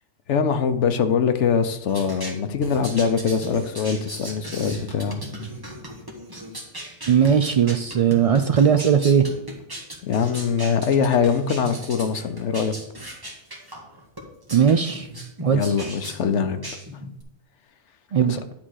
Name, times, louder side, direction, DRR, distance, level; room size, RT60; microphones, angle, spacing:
voice 1, 0.3-5.2 10.0-12.7 15.5-16.6 18.3-18.4, left 6 dB, 90° left, 1.1 m, -23 dB
sound 1, 1.9-17.2, equal, 20° right, 1.4 m, -37 dB
voice 2, 7.1-9.2 14.5-15.1 15.4-15.7 18.1-18.4, right 7 dB, 65° right, 0.3 m, -18 dB
10.5 x 3.7 x 6.3 m
omnidirectional pair, 1.2 m